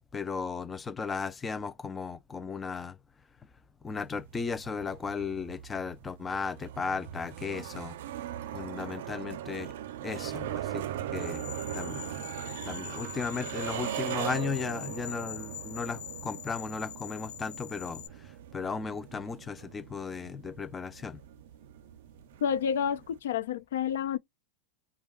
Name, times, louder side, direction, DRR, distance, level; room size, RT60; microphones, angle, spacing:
voice 1, 0.1-3.0 3.8-8.0 8.5-9.7 10.0-10.8 11.1-12.1 12.7-21.2, left 5 dB, 15° left, 0.3 m, -36 dB
sound 1, 3.9-23.2, right 12 dB, 75° right, 0.4 m, -40 dB
sound 2, 11.2-18.1, left 12 dB, 65° left, 1.0 m, -44 dB
voice 2, 22.4-24.2, left 8 dB, 90° left, 0.4 m, -29 dB
2.3 x 2.2 x 3.5 m
supercardioid pair, 150°, 0 cm